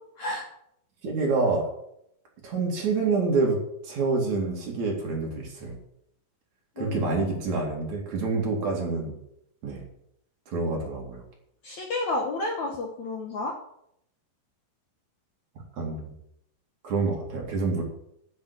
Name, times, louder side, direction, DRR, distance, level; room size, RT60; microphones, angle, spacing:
voice 1, 0.2-0.5 6.8-7.1 11.6-13.6, left 2 dB, 60° left, 1 dB, 2.0 m, -31 dB
voice 2, 1.0-1.7 2.4-3.6 3.8-5.8 6.8-9.1 9.6-9.8 10.5-11.2 15.8-16.1 16.8-17.8, right 3 dB, 50° right, -1 dB, 3.4 m, -27 dB
11.0 x 6.2 x 8.2 m, 0.75 s
omnidirectional pair, 4.7 m